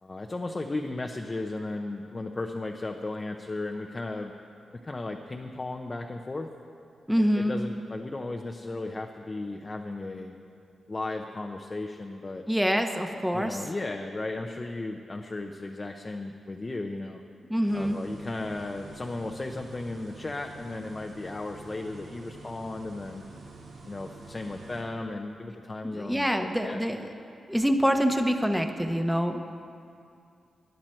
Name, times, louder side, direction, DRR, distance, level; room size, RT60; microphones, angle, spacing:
voice 1, 0.0-4.3 4.8-6.5 7.2-10.3 10.9-12.4 13.3-17.2 17.7-23.2 23.8-26.9, left 2 dB, 30° left, 2 dB, 0.7 m, -35 dB
voice 2, 7.1-7.5 12.5-13.6 17.5-18.0 25.8-27.1 27.5-29.4, equal, ahead, 5 dB, 0.9 m, -26 dB
sound 1, 17.7-24.8, right 3 dB, 80° right, 2.1 m, -47 dB
19.0 x 10.5 x 4.5 m, 2.4 s
cardioid pair, 95°, 0 cm